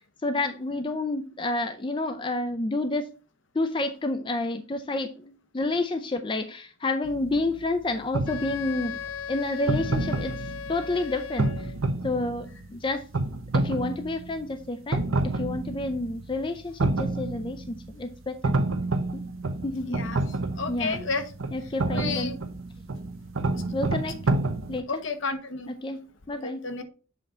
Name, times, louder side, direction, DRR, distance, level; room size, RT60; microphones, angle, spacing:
voice 1, 0.2-3.1 3.5-9.0 9.3-10.3 10.7-11.7 12.0-13.0 13.5-15.1 15.3-18.5 19.1-19.2 19.6-20.0 20.7-21.0 21.5-22.3 23.7-24.2 24.7-25.0 25.7-26.0 26.3-26.6, left 2 dB, 25° left, 8 dB, 0.5 m, -29 dB
sound 1, 7.0-24.8, right 2 dB, 80° right, 0.8 m, -30 dB
Wind instrument woodwind instrument, 8.3-11.8, left 7 dB, 85° left, 0.5 m, -37 dB
voice 2, 19.9-20.2 20.6-21.2 21.9-22.4 24.9-25.7 26.4-26.8, left 4 dB, 65° left, 8 dB, 1.0 m, -31 dB
7.4 x 3.9 x 4.3 m, 0.36 s
head